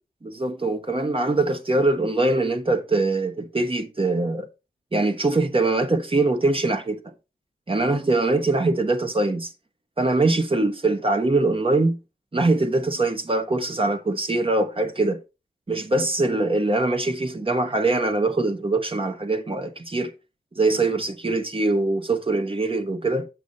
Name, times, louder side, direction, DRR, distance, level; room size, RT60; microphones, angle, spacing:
voice 1, 0.2-4.5 4.9-7.0 7.7-9.5 10.0-12.0 12.3-15.2 15.7-20.1 20.5-23.3, right 2 dB, 35° right, 1.1 m, -23 dB
8.1 x 6.3 x 4.0 m
cardioid pair, 55°, 16 cm